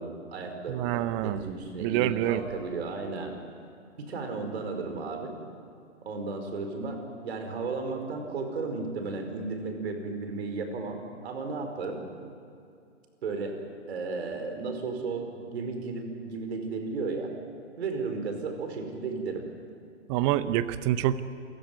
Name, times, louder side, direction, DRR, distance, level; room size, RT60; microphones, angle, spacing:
voice 1, 0.0-3.4 4.0-5.4 6.0-7.0 7.2-12.0 13.2-13.6 13.9-17.3 17.8-19.5, right 4 dB, 55° right, 5 dB, 4.9 m, -34 dB
voice 2, 0.7-1.5 1.8-2.4 20.1-21.2, right 13 dB, 25° right, 15 dB, 0.8 m, -26 dB
28.0 x 16.0 x 9.5 m, 2.4 s
figure-of-eight pair, 125°, 38 cm